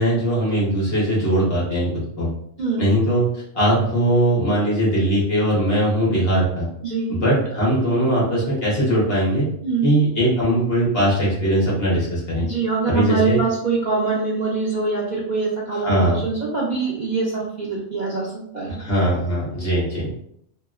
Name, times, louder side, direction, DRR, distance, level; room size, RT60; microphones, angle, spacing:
voice 1, 0.0-1.9 2.2-2.3 2.8-6.7 7.1-9.5 9.8-12.5 12.9-13.4 15.8-16.2 18.8-20.1, right 1 dB, 45° left, -5 dB, 1.2 m, -20 dB
voice 2, 6.8-7.2 9.6-9.9 12.4-18.7, right 4 dB, 85° right, -6 dB, 0.4 m, -24 dB
2.9 x 2.8 x 2.4 m, 0.71 s
omnidirectional pair, 1.5 m